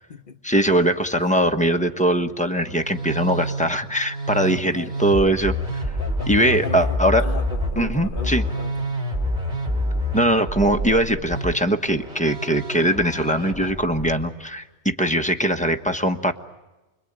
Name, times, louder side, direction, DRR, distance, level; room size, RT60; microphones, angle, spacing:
voice 1, 0.4-5.6 6.3-7.2 7.8-8.4 10.1-16.3, right 1 dB, 5° left, 1.3 m, -21 dB
Musical instrument, 2.5-14.3, equal, 40° right, 3.1 m, -28 dB
voice 2, 4.4-5.0 6.0-9.0, left 4 dB, 50° left, 1.4 m, -36 dB
sound 1, 9.7-14.5, left 7 dB, 20° right, 3.0 m, -49 dB
29.5 x 21.5 x 8.9 m
omnidirectional pair, 1.2 m